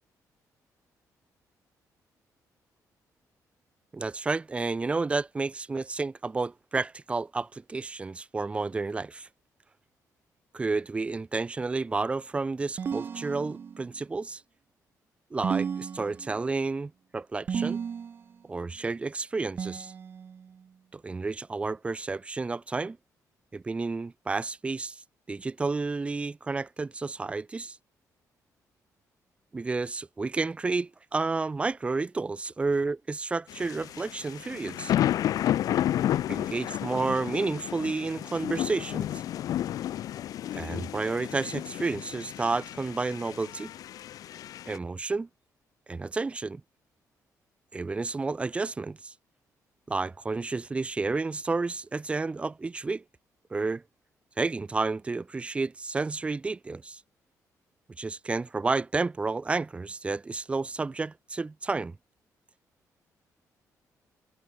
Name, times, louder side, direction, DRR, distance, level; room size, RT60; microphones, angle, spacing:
voice 1, 3.9-9.3 10.5-14.4 15.3-17.8 18.5-19.9 20.9-23.0 23.5-25.0 25.3-27.8 29.5-34.9 36.3-39.2 40.5-43.7 44.7-45.3 45.9-46.6 47.7-49.1 49.9-53.0 53.5-53.8 54.4-57.0 58.0-62.0, right 3 dB, 20° right, 2.3 m, -31 dB
sound 1, 12.8-14.0 15.4-16.6 17.5-18.4 19.6-20.5, right 7 dB, 35° right, 1.2 m, -33 dB
sound 2, 33.5-44.8, left 12 dB, 70° left, 1.2 m, -31 dB
cardioid pair, 165°, 6 cm